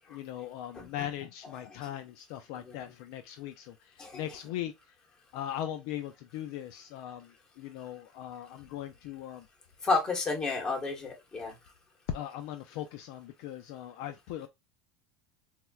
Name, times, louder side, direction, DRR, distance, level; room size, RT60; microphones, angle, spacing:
voice 1, 0.1-3.7 4.1-4.7 5.3-7.3 7.6-9.4 12.1-14.5, left 11 dB, 70° left, 0.3 m, -39 dB
voice 2, 9.8-11.5, left 3 dB, 25° left, 1.1 m, -31 dB
4.2 x 2.1 x 2.3 m
supercardioid pair, 125°, 3 cm